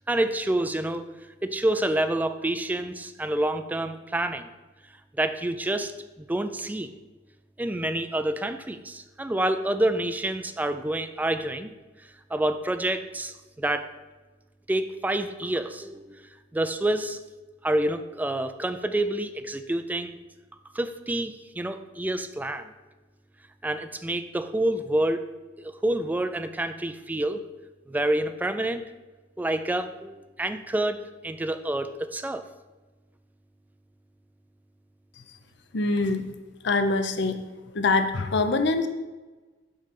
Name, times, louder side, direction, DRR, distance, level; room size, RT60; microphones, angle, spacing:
voice 1, 0.1-1.1 1.4-4.5 5.1-6.9 7.6-11.7 12.3-13.9 14.7-17.2 17.6-20.2 20.7-22.7 23.6-25.3 25.6-27.4 27.9-28.9 29.4-31.0 31.2-32.4, right 1 dB, 10° right, 9 dB, 0.3 m, -28 dB
voice 2, 35.7-36.2 36.6-37.4 37.7-38.9, left 3 dB, 65° left, 8 dB, 0.6 m, -24 dB
8.2 x 3.3 x 5.8 m, 1.2 s
head